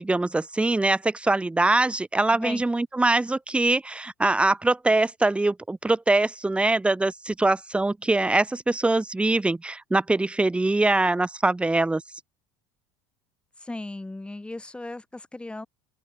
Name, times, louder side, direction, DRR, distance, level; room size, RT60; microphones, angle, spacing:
voice 1, 0.0-12.0, right 2 dB, 10° right, 1.9 m, -23 dB
voice 2, 2.3-2.6 13.6-15.7, left 2 dB, 10° left, 4.3 m, -36 dB
open air
supercardioid pair, 95°, 11 cm